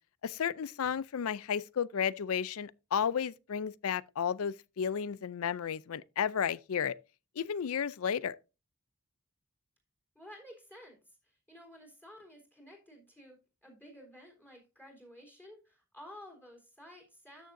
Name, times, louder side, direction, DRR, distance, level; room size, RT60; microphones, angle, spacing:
voice 1, 0.2-6.9 7.4-8.4, left 7 dB, 70° left, 0.4 m, -33 dB
voice 2, 10.2-17.5, equal, 10° left, 3.6 m, -53 dB
13.0 x 6.5 x 2.6 m
head